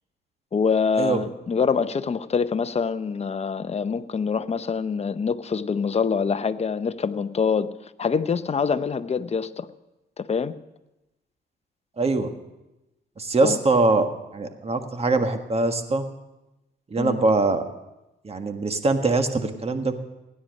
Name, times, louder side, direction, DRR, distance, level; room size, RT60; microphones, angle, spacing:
voice 1, 0.5-9.7 10.2-10.5 13.4-13.6 17.0-17.2, left 5 dB, 30° left, 12 dB, 0.7 m, -25 dB
voice 2, 12.0-12.3 13.2-14.1 14.3-16.0 16.9-17.6 18.2-19.9, right 3 dB, 30° right, 6 dB, 1.6 m, -22 dB
16.5 x 10.0 x 6.5 m, 0.98 s
cardioid pair, 90°, 20 cm